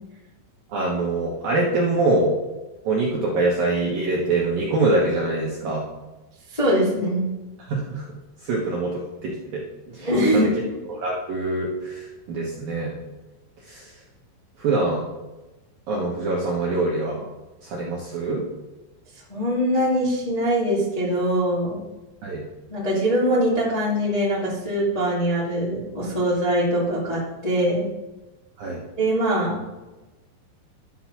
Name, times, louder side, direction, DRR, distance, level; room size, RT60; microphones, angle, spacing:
voice 1, 0.7-2.3 2.8-5.8 7.7-8.1 8.4-9.6 9.9-10.5 10.9-12.9 13.7-13.9 14.6-15.1 15.9-17.2 17.6-18.4 22.2-22.4 28.6-28.8, right 2 dB, 70° right, -3 dB, 2.1 m, -24 dB
voice 2, 6.5-7.3 10.0-10.8 19.3-21.8 22.7-27.9 29.0-29.6, equal, 25° left, -7 dB, 0.8 m, -22 dB
12.0 x 6.1 x 5.8 m, 1.1 s
omnidirectional pair, 6.0 m